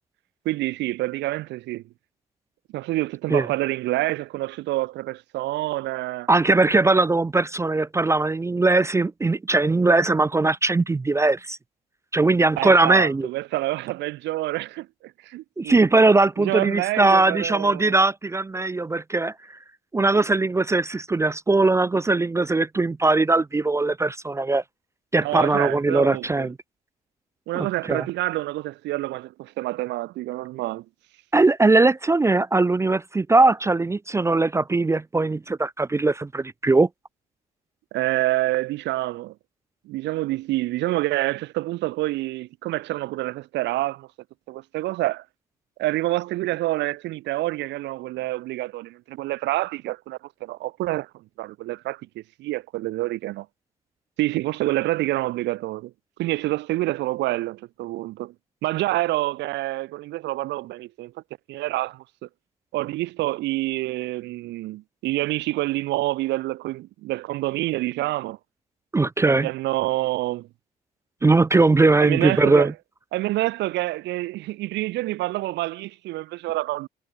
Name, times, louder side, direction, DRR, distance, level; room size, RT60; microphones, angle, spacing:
voice 1, 0.4-1.8 2.7-6.3 12.6-15.8 16.4-18.0 25.2-26.5 27.5-30.8 37.9-39.3 39.8-44.1 44.5-45.2 45.8-53.5 54.2-55.9 56.2-58.3 58.6-61.1 61.5-62.3 62.7-68.4 69.2-70.5 72.0-72.7 73.1-76.9, right 17 dB, 65° right, 1.1 m, -27 dB
voice 2, 6.3-11.6 12.1-13.3 15.6-19.3 19.9-24.6 25.1-26.5 27.5-28.0 31.3-36.9 68.9-69.5 71.2-72.7, right 3 dB, 15° right, 0.4 m, -20 dB
hypercardioid pair, 50°, 20 cm